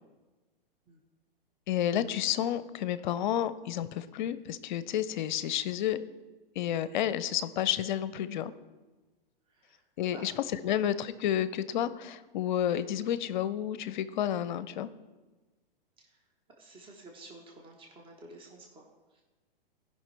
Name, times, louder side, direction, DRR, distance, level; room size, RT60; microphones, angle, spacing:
voice 1, 1.7-6.0 6.6-8.5 10.0-14.9, left 10 dB, 55° left, 14 dB, 0.6 m, -30 dB
voice 2, 9.5-9.8 10.1-10.3 10.6-10.8 16.0-16.2 16.6-19.2, right 2 dB, 15° right, 0 dB, 1.2 m, -51 dB
16.5 x 5.6 x 3.3 m, 1.2 s
hypercardioid pair, 115°, 29 cm